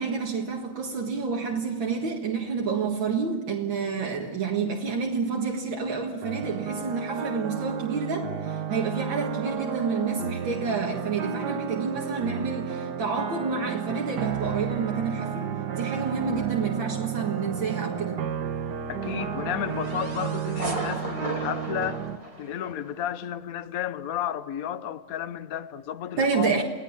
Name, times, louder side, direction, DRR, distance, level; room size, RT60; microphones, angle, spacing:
voice 1, 0.0-18.3 26.2-26.6, right 5 dB, 80° right, 2.5 m, -29 dB
sound 1, 6.2-22.2, right 7 dB, 60° right, 1.7 m, -32 dB
voice 2, 18.9-22.1 22.4-26.6, left 10 dB, 55° left, 1.2 m, -32 dB
sound 2, 19.0-23.0, right 2 dB, 15° right, 2.4 m, -36 dB
29.0 x 17.5 x 7.3 m
omnidirectional pair, 2.1 m